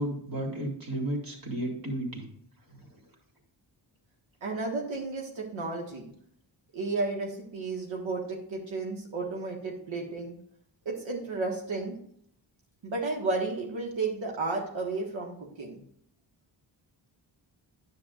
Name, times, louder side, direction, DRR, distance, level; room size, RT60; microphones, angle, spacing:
voice 1, 0.0-2.2 2.7-2.9, right 1 dB, 50° right, 1 dB, 2.8 m, -33 dB
voice 2, 4.4-6.1 6.7-10.4 10.8-11.9 12.8-15.8, right 3 dB, 90° right, -1 dB, 1.7 m, -33 dB
10.0 x 8.4 x 2.5 m, 0.67 s
wide cardioid pair, 115°, 45 cm